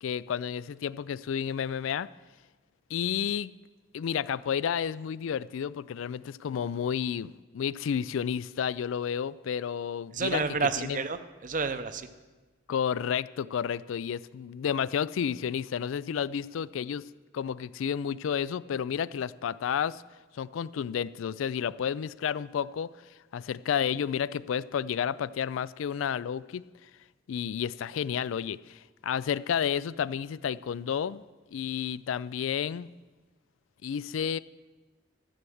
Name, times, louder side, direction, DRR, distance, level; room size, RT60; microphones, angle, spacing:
voice 1, 0.0-2.1 2.9-3.5 3.9-10.4 10.8-11.0 12.7-17.1 17.3-20.0 20.3-22.9 23.3-26.6 27.3-31.2 31.5-32.9 33.8-34.4, left 8 dB, 80° left, 19 dB, 0.3 m, -31 dB
voice 2, 10.1-12.1, right 4 dB, 40° right, 11 dB, 0.7 m, -30 dB
13.0 x 7.0 x 7.8 m, 1.2 s
head